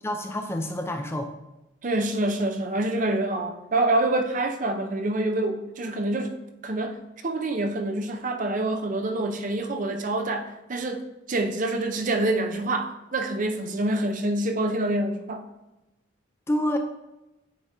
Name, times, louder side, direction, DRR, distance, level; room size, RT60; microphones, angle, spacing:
voice 1, 0.0-1.3 16.5-16.8, left 1 dB, 15° left, 5 dB, 0.4 m, -27 dB
voice 2, 1.8-6.3 6.6-15.4, right 2 dB, 40° right, 6 dB, 0.5 m, -26 dB
8.4 x 2.9 x 4.8 m, 0.97 s
head